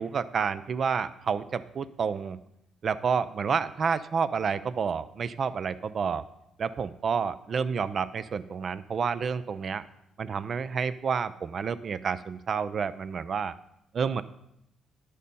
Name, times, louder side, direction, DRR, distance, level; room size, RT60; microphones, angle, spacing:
voice 1, 0.0-2.4 2.8-6.3 6.6-9.8 10.2-13.5 13.9-14.2, right 6 dB, 50° right, 14 dB, 0.5 m, -29 dB
10.0 x 6.5 x 5.4 m, 0.81 s
cardioid pair, 90°, 0 cm